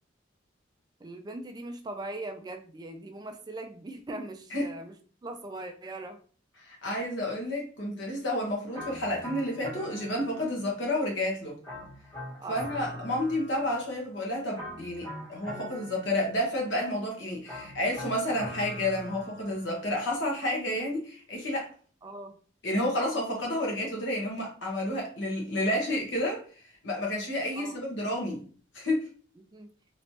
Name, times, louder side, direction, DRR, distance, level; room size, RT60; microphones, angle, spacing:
voice 1, 1.0-4.9 5.2-6.2 12.4-13.0 22.0-22.3 27.6-27.8 29.4-29.7, right 2 dB, 20° right, 6 dB, 0.3 m, -40 dB
voice 2, 6.6-11.6 12.5-21.7 22.6-26.4 26.8-28.4 28.7-29.0, left 1 dB, 65° left, -1 dB, 1.2 m, -30 dB
sound 1, 8.7-10.8 11.6-14.0 14.5-16.6 17.5-19.8, equal, 20° left, 1.4 m, -43 dB
3.1 x 3.0 x 2.8 m, 0.41 s
head